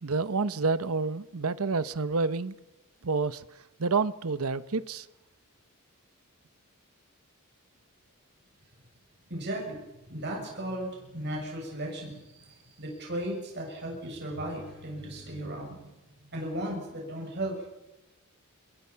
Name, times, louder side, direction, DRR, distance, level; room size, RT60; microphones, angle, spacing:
voice 1, 0.0-2.5 3.0-3.4 3.8-5.1, right 4 dB, 70° right, 0.9 m, -28 dB
voice 2, 9.3-15.9 16.2-17.7, right 1 dB, 50° right, 7.4 m, -36 dB
26.5 x 22.0 x 5.8 m
head